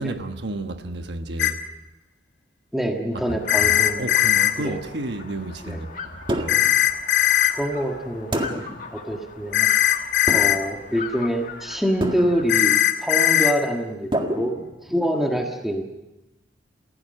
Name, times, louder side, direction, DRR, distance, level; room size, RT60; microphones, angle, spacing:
voice 1, 0.0-1.6 3.3-6.6, right 2 dB, 60° right, 1.3 m, -32 dB
sound 1, 1.4-1.5 3.5-4.5 6.5-7.5 9.5-10.6 12.5-13.5, left 12 dB, 70° left, 2.0 m, -18 dB
voice 2, 2.7-4.0 4.6-4.8 5.6-5.8 7.5-8.7 8.9-9.7 10.3-14.5 14.8-15.8, equal, ahead, 1.6 m, -25 dB
sound 2, 3.1-12.8, left 5 dB, 45° left, 1.9 m, -40 dB
sound 3, 6.3-6.8 8.3-8.9 10.3-10.8 12.0-12.6 14.1-15.1, right 1 dB, 25° right, 1.8 m, -28 dB
28.5 x 16.0 x 6.6 m
head